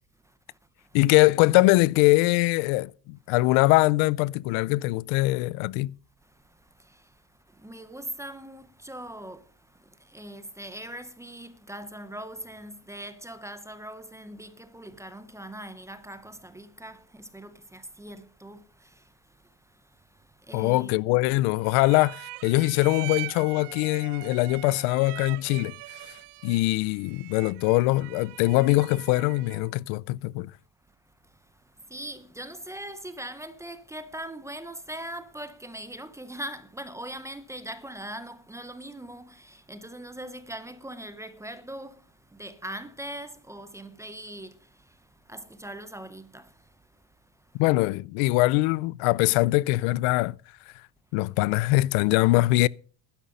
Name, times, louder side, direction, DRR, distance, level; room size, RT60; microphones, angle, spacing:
voice 1, 0.2-0.9 6.2-21.0 31.2-47.6, right 1 dB, 5° right, 0.5 m, -41 dB
voice 2, 0.9-5.9 20.5-25.7 26.4-30.5 47.5-50.3 51.1-52.7, left 20 dB, 85° left, 0.6 m, -22 dB
sound 1, 21.6-29.7, right 21 dB, 60° right, 0.6 m, -42 dB
11.5 x 10.5 x 5.3 m
cardioid pair, 155°, 48 cm